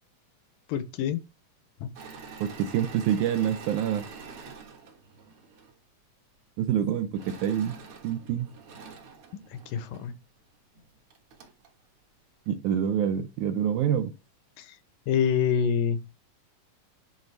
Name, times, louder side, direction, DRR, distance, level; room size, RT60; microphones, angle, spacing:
voice 1, 0.7-1.2 1.8-1.9 9.3-9.4 9.7-10.1 14.6-14.7 15.1-16.0, left 7 dB, 75° left, 2.3 m, -26 dB
Engine / Mechanisms, 1.9-5.7 7.1-10.1 10.7-10.8 11.1-11.7, right 5 dB, 55° right, 1.7 m, -46 dB
voice 2, 2.4-4.0 6.6-7.8 8.0-8.5 12.5-14.1, right 9 dB, 75° right, 1.9 m, -26 dB
10.5 x 3.9 x 3.3 m
omnidirectional pair, 4.1 m